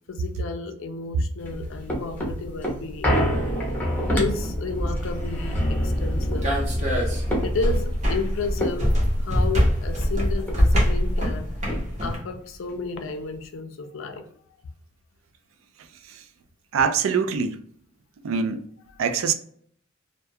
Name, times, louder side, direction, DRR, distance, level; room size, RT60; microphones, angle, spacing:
voice 1, 0.1-3.2 4.1-6.5 7.4-11.5 12.0-14.2, left 4 dB, 70° left, 0.4 m, -32 dB
sound 1, 1.4-10.1 10.5-10.6 10.8-12.2 12.7-12.8, equal, 10° left, 0.7 m, -27 dB
sound 2, 5.0-12.2, equal, 35° right, 0.8 m, -24 dB
voice 2, 16.7-17.6 18.2-18.6 19.0-19.3, right 6 dB, 75° right, 0.4 m, -23 dB
2.3 x 2.2 x 2.6 m
head